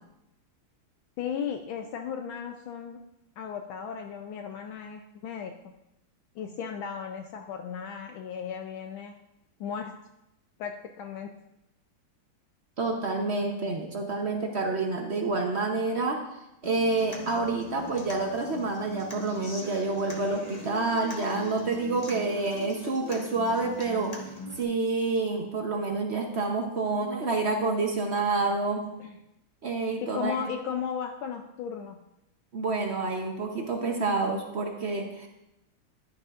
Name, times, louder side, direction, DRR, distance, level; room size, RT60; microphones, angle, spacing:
voice 1, 1.2-3.0 3.4-5.5 6.4-9.1 9.6-9.9 10.6-11.3 29.0-29.2 30.0-32.0, left 7 dB, 75° left, 4 dB, 1.3 m, -35 dB
voice 2, 12.8-16.2 16.6-24.1 24.6-28.8 29.6-30.4 32.5-35.3, right 3 dB, 60° right, 2 dB, 0.7 m, -28 dB
Human voice / Acoustic guitar, 16.6-24.6, left 1 dB, 25° left, 1.0 m, -41 dB
11.5 x 10.5 x 2.5 m, 0.88 s
omnidirectional pair, 2.4 m